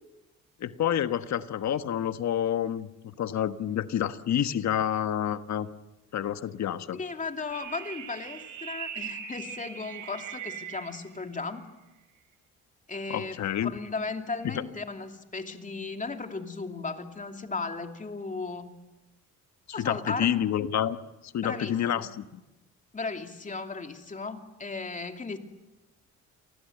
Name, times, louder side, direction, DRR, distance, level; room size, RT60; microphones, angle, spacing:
voice 1, 0.6-5.7 6.1-7.0 13.1-13.7 14.5-14.6 19.8-21.0 21.3-22.2, left 10 dB, 65° left, 10 dB, 1.4 m, -28 dB
voice 2, 6.9-11.7 12.9-18.7 19.7-20.3 21.4-22.1 22.9-25.4, left 4 dB, 25° left, 5 dB, 2.8 m, -36 dB
sound 1, 7.5-11.0, right 8 dB, 90° right, 5.2 m, -40 dB
28.5 x 20.5 x 7.9 m, 1.0 s
cardioid pair, 90°, 30 cm